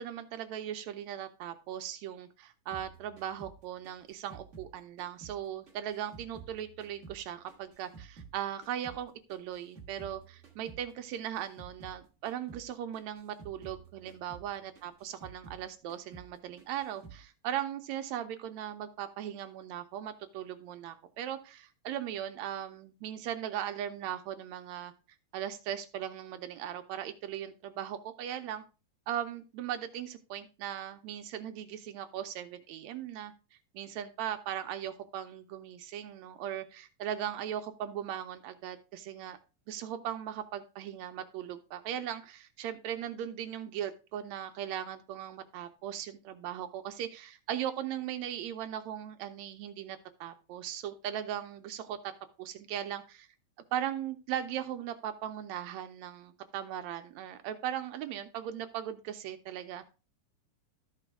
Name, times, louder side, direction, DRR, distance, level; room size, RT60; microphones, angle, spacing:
voice 1, 0.0-24.9 25.3-28.6 29.1-33.3 33.7-39.4 39.7-52.0 52.4-53.3 53.7-59.9, right 10 dB, 75° right, 8 dB, 1.7 m, -38 dB
sound 1, 2.7-5.4 5.7-8.4 8.6-12.0 12.2-12.7 12.9-15.6 15.9-16.3 16.6-17.2, right 5 dB, 45° right, 0.9 m, -51 dB
13.0 x 4.9 x 3.5 m, 0.31 s
omnidirectional pair, 3.7 m